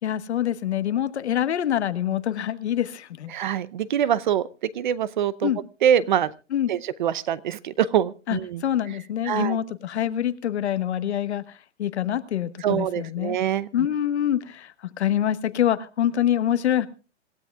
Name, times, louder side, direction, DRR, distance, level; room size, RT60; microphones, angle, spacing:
voice 1, 0.0-3.3 5.4-5.6 6.5-6.7 8.3-13.4 13.7-16.9, left 10 dB, 65° left, 13 dB, 1.3 m, -25 dB
voice 2, 3.3-4.5 4.7-5.5 5.8-6.3 6.7-8.6 9.3-9.6 12.6-13.7, right 9 dB, 40° right, 19 dB, 0.6 m, -24 dB
26.0 x 13.5 x 2.3 m, 0.33 s
hypercardioid pair, 160°, 36 cm